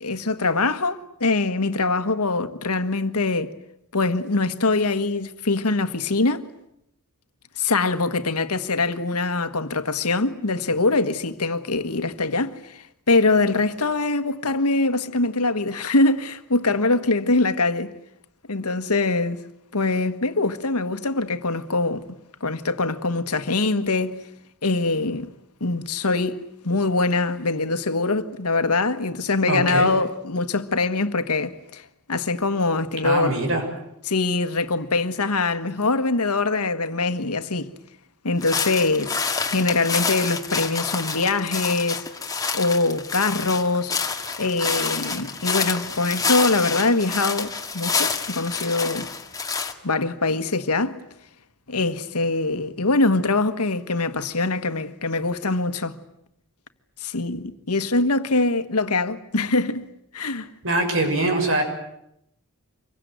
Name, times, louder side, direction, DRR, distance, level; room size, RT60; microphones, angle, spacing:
voice 1, 0.0-3.5 3.9-6.5 7.6-17.9 18.5-19.4 19.7-22.0 22.4-24.2 24.6-25.3 25.6-26.4 26.6-33.3 34.1-37.7 38.2-39.2 39.5-42.0 42.5-43.9 44.4-49.1 49.8-51.0 51.7-56.0 57.0-59.9 60.1-60.5, left 3 dB, 85° left, 1.5 m, -23 dB
voice 2, 29.5-29.9 33.0-33.6 60.6-61.6, right 2 dB, 65° right, 6.6 m, -22 dB
sound 1, 38.4-49.7, left 5 dB, 15° left, 2.0 m, -28 dB
26.0 x 23.0 x 9.4 m
head